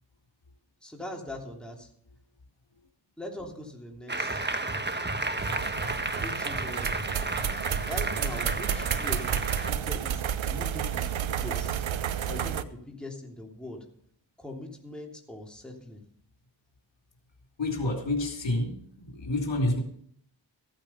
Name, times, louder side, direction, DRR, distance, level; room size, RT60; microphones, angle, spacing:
voice 1, 0.8-1.9 3.2-4.6 6.2-7.0 7.8-11.9 12.2-13.8 14.4-16.0, left 1 dB, ahead, 0 dB, 3.1 m, -41 dB
Applause, 4.1-9.7, right 2 dB, 20° right, 1.3 m, -32 dB
sound 1, 5.4-12.6, right 9 dB, 80° right, 0.8 m, -31 dB
voice 2, 17.6-19.8, left 2 dB, 65° left, 2 dB, 2.8 m, -29 dB
15.0 x 8.8 x 5.6 m, 0.64 s
cardioid pair, 50°, 47 cm